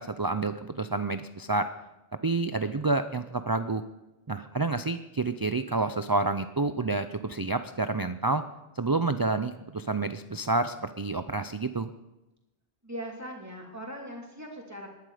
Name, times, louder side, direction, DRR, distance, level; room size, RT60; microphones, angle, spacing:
voice 1, 0.0-1.7 2.2-3.8 4.3-8.4 8.8-11.9, right 3 dB, 30° right, 10 dB, 0.4 m, -29 dB
voice 2, 12.8-14.9, equal, 15° right, -1 dB, 3.0 m, -40 dB
19.5 x 11.5 x 5.0 m, 0.99 s
omnidirectional pair, 1.1 m